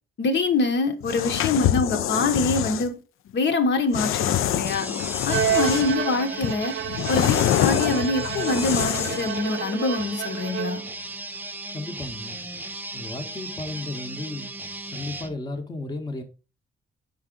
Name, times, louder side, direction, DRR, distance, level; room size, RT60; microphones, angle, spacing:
voice 1, 0.2-3.0 3.3-4.9 5.2-6.7 7.1-10.8, left 3 dB, 60° left, 0.9 m, -25 dB
sound 1, 1.0-2.9 3.9-6.0 6.4-9.3, left 11 dB, 80° left, 0.4 m, -25 dB
sound 2, 4.7-15.3, right 2 dB, 10° right, 0.4 m, -37 dB
Bowed string instrument, 5.3-11.0, right 9 dB, 65° right, 0.5 m, -30 dB
voice 2, 11.7-12.4 12.9-14.5 14.9-16.2, left 2 dB, 20° left, 0.8 m, -34 dB
5.4 x 4.8 x 3.7 m
wide cardioid pair, 160°, 21 cm